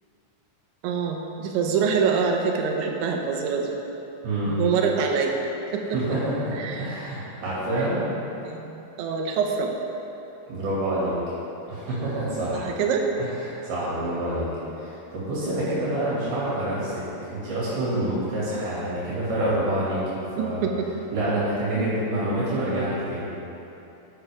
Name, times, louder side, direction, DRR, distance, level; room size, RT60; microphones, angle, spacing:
voice 1, 0.8-3.7 4.5-5.4 5.7-6.0 6.6-6.9 8.4-9.7 12.5-13.1 20.4-20.9 21.8-22.0, right 5 dB, 80° right, 2 dB, 3.3 m, -25 dB
voice 2, 4.2-4.7 5.9-8.0 10.5-11.2 11.7-12.7 13.2-14.5 14.8-17.0 17.3-20.7 21.1-23.3, right 1 dB, 60° right, -8 dB, 3.9 m, -27 dB
13.0 x 9.3 x 3.5 m, 3.0 s
omnidirectional pair, 5.2 m